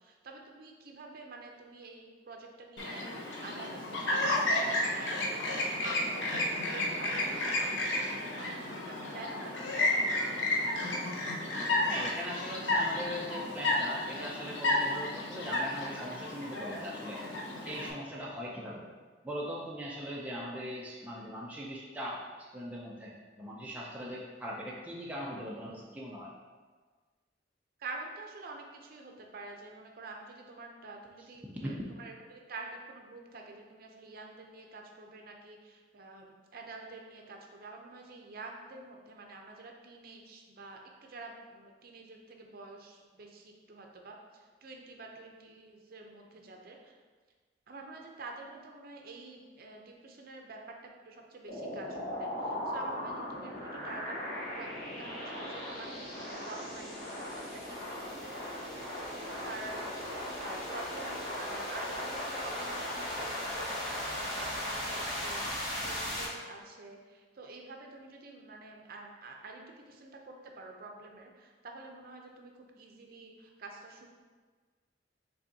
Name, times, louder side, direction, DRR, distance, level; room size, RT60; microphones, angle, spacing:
voice 1, 0.0-10.0 27.8-36.3 36.5-47.0 47.7-58.3 59.4-59.8 60.4-74.1, right 3 dB, 55° right, 2 dB, 0.6 m, -48 dB
Chirp tweet, 2.8-17.9, left 1 dB, 85° left, 0.7 m, -32 dB
voice 2, 11.9-17.2 17.7-18.9 19.2-26.3 31.6-31.7, equal, 10° right, -4 dB, 0.5 m, -40 dB
sound 1, 51.5-66.2, left 1 dB, 55° left, 1.2 m, -37 dB
5.4 x 3.5 x 2.7 m, 1.4 s
head